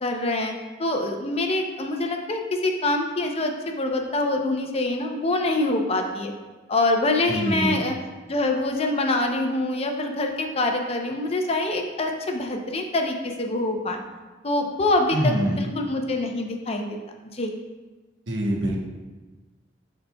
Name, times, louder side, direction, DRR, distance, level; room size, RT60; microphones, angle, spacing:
voice 1, 0.0-0.5 0.8-6.3 6.7-7.9 8.3-14.0 14.4-17.0 17.3-17.5, left 2 dB, 35° left, 3 dB, 0.6 m, -25 dB
voice 2, 7.3-7.8 15.1-15.6 18.3-18.8, equal, 75° right, 0 dB, 1.0 m, -24 dB
11.0 x 4.0 x 2.2 m, 1.2 s
head